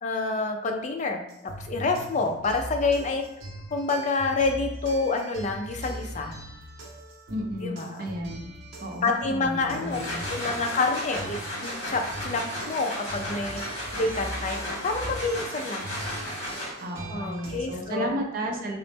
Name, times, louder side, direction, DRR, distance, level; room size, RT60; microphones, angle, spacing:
voice 1, 0.0-3.2 3.7-6.4 7.6-8.1 9.0-13.6 13.9-16.1 17.1-18.1, left 3 dB, 35° left, 4 dB, 0.4 m, -28 dB
sound 1, 1.3-17.8, right 1 dB, 75° right, 0.8 m, -41 dB
voice 2, 7.3-8.5 8.8-10.2 16.8-18.8, equal, 45° right, 1 dB, 0.5 m, -33 dB
sound 2, 9.7-17.0, left 1 dB, 55° left, 1.1 m, -35 dB
3.8 x 2.0 x 3.4 m, 0.80 s
head